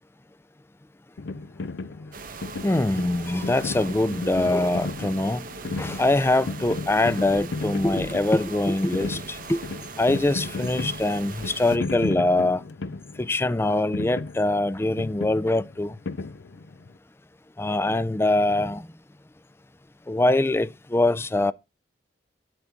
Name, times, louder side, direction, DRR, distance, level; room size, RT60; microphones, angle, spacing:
sound 1, 1.2-16.9, left 3 dB, 75° left, 0.6 m, -35 dB
sound 2, 2.1-11.8, right 4 dB, 50° right, 0.8 m, -40 dB
voice 1, 2.6-5.5 5.8-9.6 10.0-12.6 13.2-16.0 17.6-18.9 20.1-21.5, left 2 dB, 15° left, 0.4 m, -23 dB
8.6 x 8.0 x 3.6 m
head